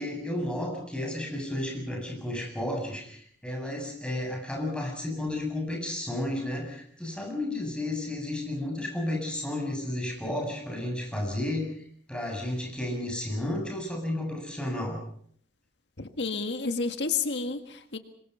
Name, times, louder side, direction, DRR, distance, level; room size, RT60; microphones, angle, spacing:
voice 1, 0.0-15.0, left 1 dB, 5° left, 1 dB, 7.9 m, -32 dB
voice 2, 16.0-18.0, left 4 dB, 90° left, 8 dB, 1.8 m, -30 dB
26.5 x 24.0 x 5.6 m, 0.62 s
head